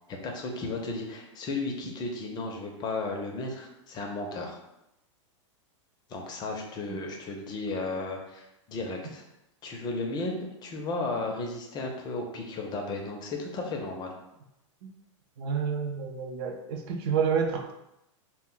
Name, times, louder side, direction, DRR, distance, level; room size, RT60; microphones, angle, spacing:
voice 1, 0.1-4.6 6.1-9.2 9.6-14.1, left 3 dB, 25° left, 2 dB, 0.5 m, -34 dB
voice 2, 15.4-17.7, right 6 dB, 55° right, 3 dB, 0.4 m, -29 dB
2.1 x 2.1 x 3.7 m, 0.88 s
hypercardioid pair, 130°, 16 cm